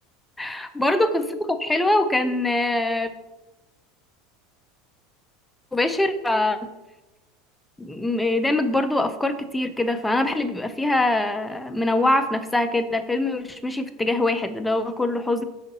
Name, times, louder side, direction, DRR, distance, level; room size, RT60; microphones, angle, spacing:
voice 1, 0.4-3.1 5.7-6.6 7.8-15.4, left 2 dB, 5° left, 7 dB, 0.5 m, -23 dB
6.7 x 4.9 x 4.0 m, 1.0 s
supercardioid pair, 130°, 0 cm